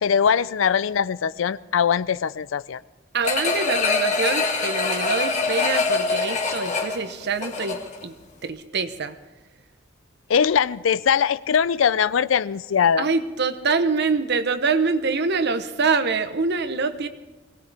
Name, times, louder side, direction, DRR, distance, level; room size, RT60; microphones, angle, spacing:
voice 1, 0.0-2.8 10.3-13.1, left 7 dB, 85° left, 18 dB, 0.4 m, -21 dB
voice 2, 3.1-8.1 8.4-9.2 13.0-17.1, right 4 dB, 60° right, 10 dB, 1.0 m, -25 dB
sound 1, 3.2-8.0 8.4-8.5, left 4 dB, 40° left, 1.8 m, -24 dB
22.0 x 18.0 x 3.5 m, 1.1 s
head